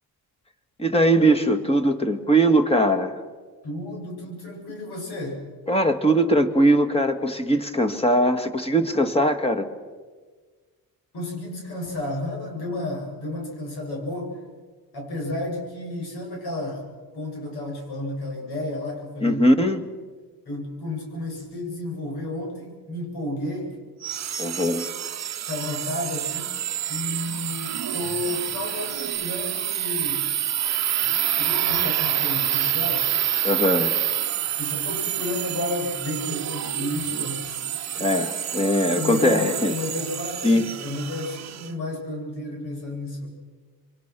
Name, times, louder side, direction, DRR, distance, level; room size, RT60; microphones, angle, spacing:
voice 1, 0.8-3.2 5.7-9.7 19.2-19.8 24.4-24.9 33.4-33.9 38.0-39.7 40.4-40.7, right 1 dB, 15° left, 7 dB, 2.0 m, -20 dB
voice 2, 3.6-5.4 11.1-14.4 14.9-16.8 17.1-19.5 20.4-23.8 25.5-26.5 26.9-30.3 31.3-33.1 34.6-37.6 38.0-38.4 38.9-43.3, left 1 dB, 90° left, 1 dB, 7.6 m, -32 dB
sound 1, 24.0-41.7, right 10 dB, 45° right, 0.8 m, -27 dB
27.5 x 24.0 x 6.2 m, 1.4 s
cardioid pair, 115°, 37 cm